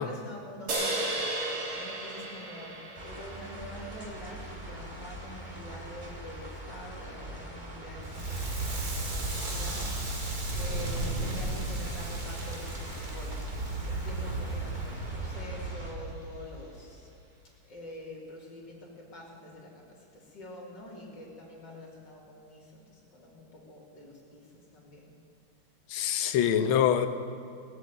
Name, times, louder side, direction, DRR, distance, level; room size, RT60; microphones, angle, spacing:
voice 1, 0.0-2.8 3.0-17.1 17.6-25.1, left 1 dB, 50° left, -4 dB, 3.6 m, -46 dB
sound 1, 0.7-4.2, right 2 dB, 85° right, 3.0 m, -34 dB
sound 2, 2.9-15.9, right 1 dB, 20° right, 2.1 m, -43 dB
Crackle, 8.0-17.0, right 2 dB, 45° right, 2.5 m, -34 dB
voice 2, 25.9-27.1, left 9 dB, 70° left, 9 dB, 1.6 m, -25 dB
18.5 x 8.2 x 7.8 m, 2.5 s
omnidirectional pair, 2.4 m